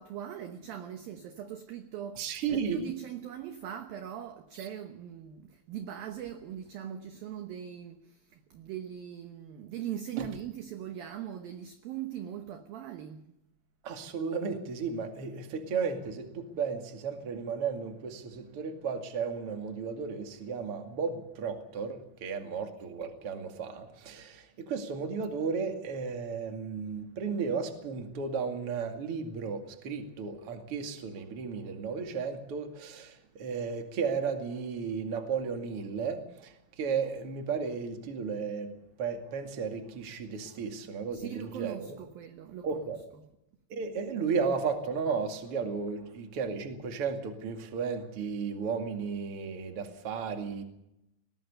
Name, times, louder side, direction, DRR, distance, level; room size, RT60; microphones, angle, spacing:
voice 1, 0.0-13.3 41.1-43.3, right 10 dB, 70° right, 2.2 m, -41 dB
voice 2, 2.2-2.8 4.5-4.7 10.2-10.3 13.8-38.7 39.0-42.0 42.6-43.0 43.7-50.6, right 5 dB, 40° right, 2.2 m, -34 dB
20.5 x 18.5 x 6.8 m
omnidirectional pair, 5.6 m